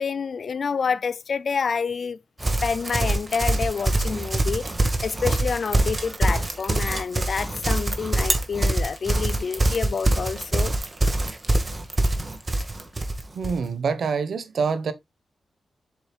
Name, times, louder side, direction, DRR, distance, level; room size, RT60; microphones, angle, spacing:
voice 1, 0.0-2.2 2.6-4.7 5.0-10.7, left 6 dB, 60° left, 0.4 m, -28 dB
Livestock farm animals working animals, 2.4-13.6, right 2 dB, 30° right, 1.8 m, -24 dB
voice 2, 13.3-14.9, right 5 dB, 75° right, 1.2 m, -26 dB
7.4 x 7.2 x 2.4 m
cardioid pair, 85°, 0 cm